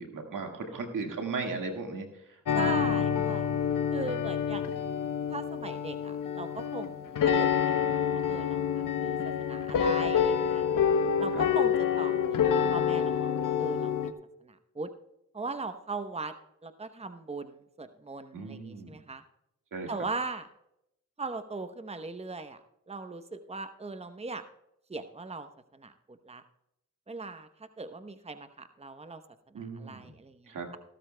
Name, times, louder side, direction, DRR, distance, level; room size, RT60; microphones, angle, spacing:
voice 1, 0.0-3.3 11.3-11.5 18.3-19.0 19.7-20.0 29.5-30.1 30.5-30.7, right 4 dB, 85° right, 3 dB, 1.9 m, -37 dB
sound 1, 2.5-14.1, left 8 dB, 80° left, 0.8 m, -27 dB
voice 2, 2.5-3.5 3.9-4.7 5.3-7.8 8.1-10.6 11.2-12.4 12.6-13.9 14.4-14.9 15.3-16.3 16.6-19.2 19.9-20.5 21.2-22.6 22.9-24.4 24.9-25.5 25.7-26.4 27.1-27.5 27.8-29.2 29.5-30.8, right 3 dB, 20° right, 9 dB, 0.9 m, -39 dB
16.5 x 13.0 x 2.2 m, 0.82 s
cardioid pair, 40°, 31 cm